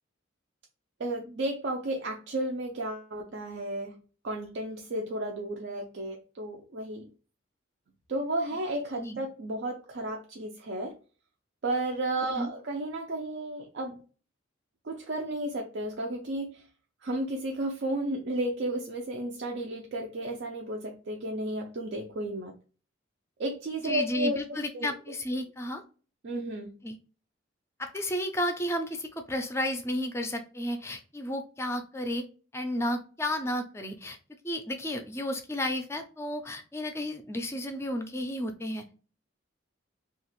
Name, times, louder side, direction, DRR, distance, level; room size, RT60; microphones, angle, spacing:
voice 1, 1.0-3.9 4.2-7.1 8.1-10.9 11.6-14.0 14.8-16.6 17.0-22.5 23.4-24.9 26.2-26.7, right 1 dB, 60° right, 1 dB, 0.4 m, -33 dB
voice 2, 23.8-25.8 26.8-27.0 27.8-32.3 32.5-34.2 34.4-39.0, left 1 dB, 15° left, 6 dB, 0.4 m, -32 dB
2.9 x 2.4 x 2.9 m, 0.37 s
head